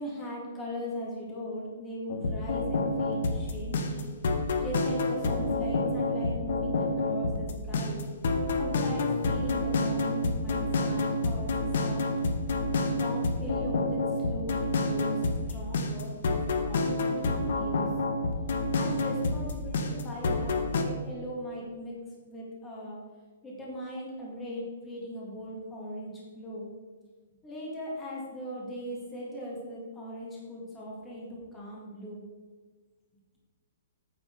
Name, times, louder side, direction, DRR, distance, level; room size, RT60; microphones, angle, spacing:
voice 1, 0.0-4.1 4.4-8.1 8.5-12.0 12.9-17.9 18.7-22.0 22.3-23.0 23.4-26.8 27.4-32.3, equal, 10° left, -5 dB, 1.9 m, -39 dB
sound 1, 2.1-20.8, left 2 dB, 55° left, 1.1 m, -28 dB
9.2 x 7.3 x 4.5 m, 1.5 s
hypercardioid pair, 180°, 0 cm